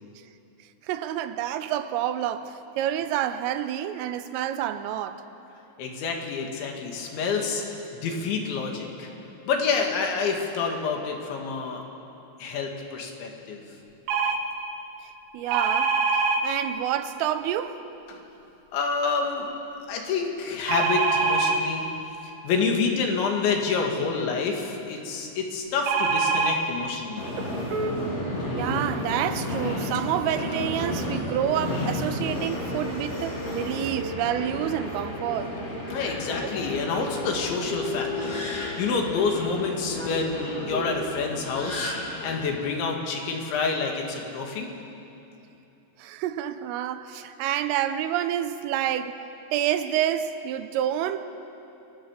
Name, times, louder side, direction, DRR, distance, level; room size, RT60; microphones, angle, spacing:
voice 1, 0.8-5.3 15.3-17.8 25.1-25.2 28.6-35.5 46.0-49.2 49.5-51.3, right 11 dB, 85° right, 3.5 m, -28 dB
voice 2, 5.8-7.6 7.9-9.1 9.5-11.8 12.4-13.6 18.1-18.3 18.7-19.5 19.9-21.9 22.4-27.3 35.9-42.0 42.2-44.7, left 5 dB, 65° left, 4.5 m, -28 dB
sound 1, 14.1-14.4 15.5-16.4 20.7-21.6 25.9-26.6 27.4-27.5 27.7-27.9, right 5 dB, 65° right, 2.9 m, -23 dB
Subway metro underground, 27.2-42.4, left 1 dB, 30° left, 4.8 m, -32 dB
29.0 x 20.5 x 7.5 m
omnidirectional pair, 5.8 m